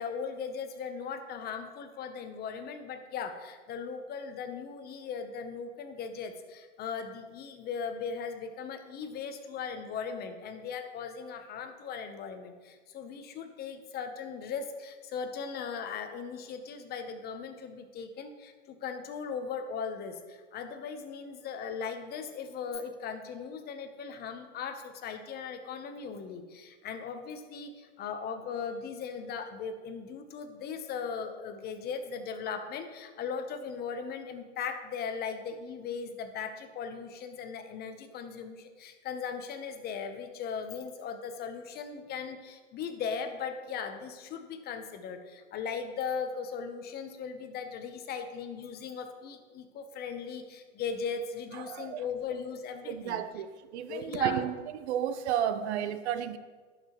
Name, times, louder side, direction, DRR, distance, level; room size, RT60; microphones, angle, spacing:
voice 1, 0.0-53.2 53.9-54.4, left 6 dB, 25° left, 7 dB, 0.8 m, -38 dB
voice 2, 51.7-52.0 52.9-53.5 53.7-54.6 54.8-56.4, right 9 dB, 65° right, 12 dB, 0.7 m, -31 dB
11.5 x 5.8 x 3.0 m, 1.4 s
hypercardioid pair, 120°, 36 cm